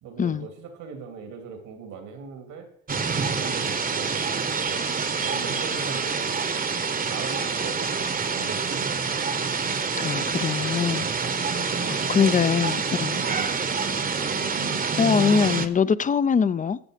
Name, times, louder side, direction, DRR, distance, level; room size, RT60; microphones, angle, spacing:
voice 1, 0.0-2.7 3.1-6.4 7.1-9.0 10.8-12.6 13.1-14.0, right 5 dB, 90° right, 2.4 m, -40 dB
sound 1, 2.9-15.7, right 5 dB, 30° right, 0.9 m, -27 dB
voice 2, 10.0-11.1 11.9-13.2 15.0-16.8, left 6 dB, 25° left, 0.4 m, -23 dB
14.0 x 7.6 x 5.0 m
cardioid pair, 90°, 30 cm